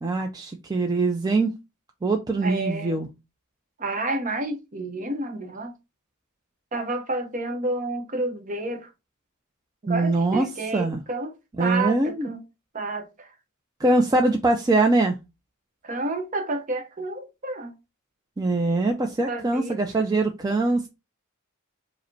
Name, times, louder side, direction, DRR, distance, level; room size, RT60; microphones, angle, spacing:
voice 1, 0.0-1.5 2.0-3.1 9.9-10.5 10.7-11.0 11.6-12.3 13.8-15.2 18.4-20.9, right 2 dB, 20° right, 0.4 m, -22 dB
voice 2, 2.4-3.0 3.8-5.7 6.7-8.9 9.8-12.4 12.7-13.3 15.8-17.8 19.3-19.8, right 2 dB, 35° right, 0.8 m, -30 dB
4.9 x 2.1 x 4.4 m
head